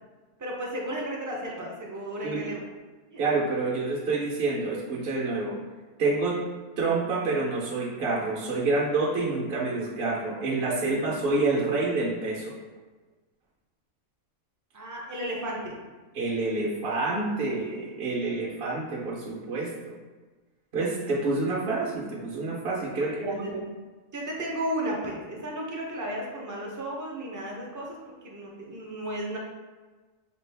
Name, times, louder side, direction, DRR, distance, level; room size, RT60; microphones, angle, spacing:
voice 1, 0.4-2.6 3.1-3.2 14.7-15.8 23.0-23.3 24.1-28.0 28.2-29.4, right 1 dB, 20° right, -2 dB, 0.5 m, -34 dB
voice 2, 3.2-5.5 6.0-6.4 6.8-12.5 16.1-20.0 20.7-23.7, right 3 dB, 50° right, -5 dB, 0.8 m, -28 dB
5.1 x 2.4 x 3.3 m, 1.3 s
omnidirectional pair, 1.4 m